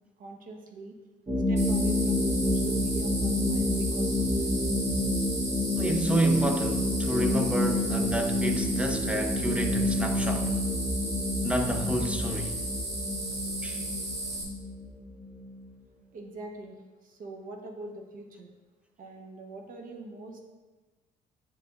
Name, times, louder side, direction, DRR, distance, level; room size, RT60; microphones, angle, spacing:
voice 1, 0.2-0.9 1.5-4.5 16.1-16.8 17.0-18.5 19.0-20.4, right 2 dB, 60° right, 0.9 m, -43 dB
sound 1, 1.3-15.6, left 1 dB, 25° right, 0.9 m, -29 dB
sound 2, 1.6-14.4, right 1 dB, 45° right, 1.5 m, -35 dB
voice 2, 5.8-10.5 11.4-12.6 13.6-13.9, right 1 dB, 5° right, 0.5 m, -29 dB
9.2 x 5.0 x 2.4 m
cardioid pair, 130°, 16 cm